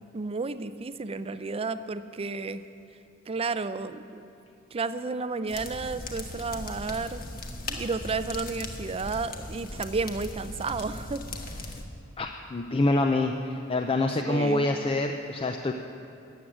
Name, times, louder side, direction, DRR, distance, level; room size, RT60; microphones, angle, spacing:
voice 1, 0.1-2.6 3.3-4.3 4.7-7.3 7.7-11.7 14.3-14.7, right 4 dB, 30° right, 12 dB, 0.5 m, -32 dB
sound 1, 5.5-11.8, left 2 dB, 50° left, 1.4 m, -38 dB
voice 2, 12.2-15.7, left 2 dB, 30° left, 4 dB, 0.5 m, -26 dB
14.0 x 7.6 x 9.8 m, 2.8 s
head